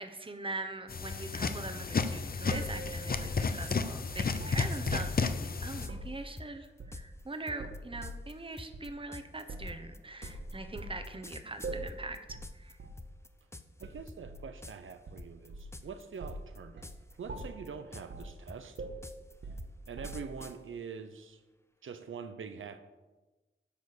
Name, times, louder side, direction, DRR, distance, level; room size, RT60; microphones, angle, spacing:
voice 1, 0.0-12.8, right 2 dB, 25° right, 7 dB, 1.0 m, -42 dB
sound 1, 0.9-5.9, left 4 dB, 50° left, 0.7 m, -32 dB
sound 2, 2.5-5.3 5.8-6.1 6.8-7.2 7.6-8.2 8.7-8.9 9.5-9.8 10.2-11.0 11.6-12.0 12.3-12.5 12.8-13.0 13.8-14.5 15.1-15.8 16.2-16.5 16.8-17.0 17.3-17.7 18.1-18.4 18.8-20.4, right 2 dB, 70° right, 1.3 m, -42 dB
sound 3, 3.6-3.8 4.2-4.9 5.3-5.4 5.8-6.0 6.4-12.7 13.0-13.8 14.1-14.4 14.6-14.9 15.2-16.0 16.3-17.1 17.4-20.6, left 2 dB, 15° left, 0.7 m, -47 dB
voice 2, 13.8-16.8 17.2-18.8 19.9-21.4 21.8-22.8, right 6 dB, 85° right, 9 dB, 0.7 m, -44 dB
9.8 x 5.3 x 6.7 m, 1.2 s
wide cardioid pair, 80°, 20 cm